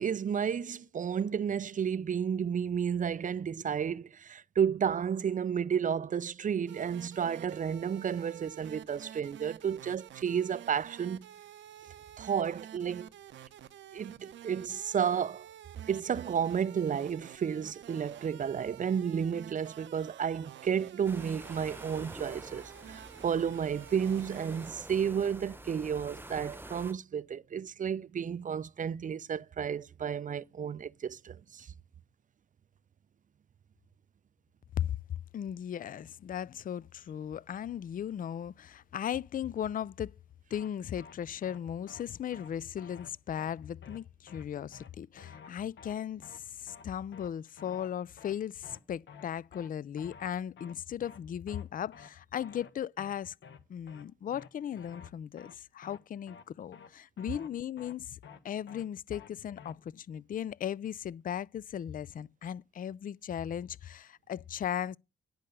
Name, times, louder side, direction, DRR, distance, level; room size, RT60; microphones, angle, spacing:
voice 1, 0.0-11.3 12.2-13.1 13.9-15.5 15.9-31.7, right 7 dB, 40° right, 0.5 m, -32 dB
sound 1, 6.7-24.7, right 11 dB, 70° right, 0.8 m, -50 dB
sound 2, 21.0-26.9, right 1 dB, 10° right, 1.0 m, -47 dB
voice 2, 35.3-40.1 40.5-53.4 53.7-58.2 58.4-65.0, left 9 dB, 45° left, 0.4 m, -37 dB
sound 3, 40.5-40.7 41.0-41.1 41.4-41.6 41.9-42.0 42.3-42.5 42.8-43.1 43.4-43.5 43.8-44.0 44.3-44.4 44.7-44.9 45.2-45.5 45.8-45.9 46.2-46.4 46.7-46.8 47.1-47.3 47.6-47.9 48.2-48.3 48.6-48.8 49.1-49.2 49.5-49.7 50.0-50.3 50.6-50.7 51.0-51.2 51.5-51.6 51.9-52.1 52.4-52.7 53.0-53.1 53.4-53.6 53.9-54.0 54.3-54.5 54.8-55.1 55.4-55.5 55.8-56.0 56.3-56.4 56.7-56.9 57.2-57.5 57.8-57.9 58.2-58.4 58.7-58.8 59.1-59.3 59.6-59.7, left 6 dB, 70° left, 1.2 m, -51 dB
10.5 x 5.4 x 6.7 m
hypercardioid pair, 45°, 20 cm